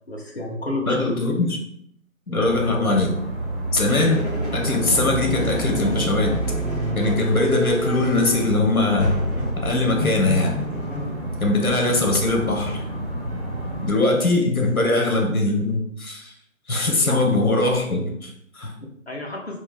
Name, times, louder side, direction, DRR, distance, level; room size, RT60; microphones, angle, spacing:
voice 1, 0.1-1.1 17.0-17.4 18.7-19.6, left 2 dB, 50° left, -1 dB, 0.8 m, -31 dB
voice 2, 0.8-1.6 2.3-3.2 3.7-4.2 4.5-6.4 6.9-9.2 9.6-10.6 11.4-12.9 13.8-16.3 16.7-18.7, left 2 dB, 90° left, 1 dB, 1.2 m, -21 dB
sound 1, 2.4-13.9, right 1 dB, 50° right, 1.2 m, -30 dB
sound 2, 3.9-14.0, left 1 dB, 30° left, 1.3 m, -30 dB
3.4 x 2.5 x 3.5 m, 0.72 s
figure-of-eight pair, 170°, 42 cm